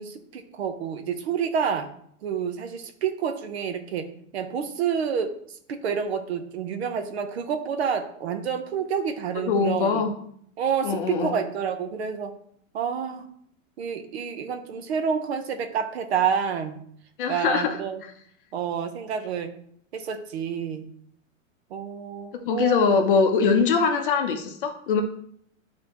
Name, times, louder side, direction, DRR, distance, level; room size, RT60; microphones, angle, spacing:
voice 1, 0.0-1.9 2.2-4.1 4.3-5.3 5.7-10.0 10.6-12.3 12.7-13.3 13.8-16.8 17.3-18.0 18.5-19.5 19.9-20.9 21.7-22.9, right 7 dB, 50° right, 9 dB, 0.9 m, -28 dB
voice 2, 9.5-10.1 10.8-11.3 17.2-17.8 22.5-25.0, left 5 dB, 40° left, 5 dB, 0.7 m, -22 dB
11.0 x 3.8 x 3.0 m, 0.66 s
supercardioid pair, 180°, 40 cm